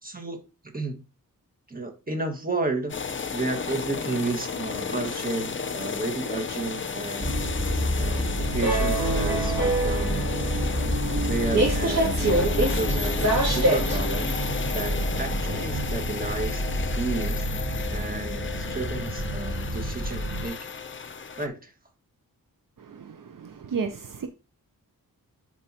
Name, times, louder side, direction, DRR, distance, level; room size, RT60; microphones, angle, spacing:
voice 1, 0.0-1.0 1.7-3.0 3.3-10.3 11.0-14.3 14.7-17.5 17.9-20.7 21.4-21.7, right 3 dB, 25° right, 1.8 m, -32 dB
sound 1, 2.9-21.5, left 5 dB, 35° left, 0.6 m, -33 dB
sound 2, 7.2-20.5, right 1 dB, 45° right, 3.0 m, -26 dB
voice 2, 22.8-24.3, right 5 dB, 65° right, 0.7 m, -33 dB
10.0 x 4.6 x 2.9 m
wide cardioid pair, 90°, 35 cm